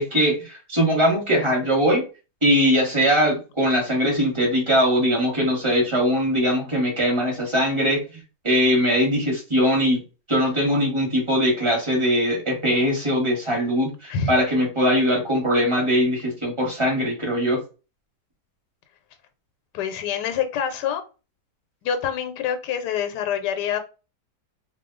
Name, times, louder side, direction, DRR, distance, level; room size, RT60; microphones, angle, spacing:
voice 1, 0.0-2.0 2.4-8.0 8.4-10.0 10.3-17.6, equal, 20° right, -1 dB, 1.0 m, -21 dB
voice 2, 14.1-14.4 19.7-21.0 21.8-23.8, left 8 dB, 85° left, 8 dB, 1.2 m, -26 dB
2.6 x 2.2 x 3.7 m, 0.32 s
omnidirectional pair, 1.8 m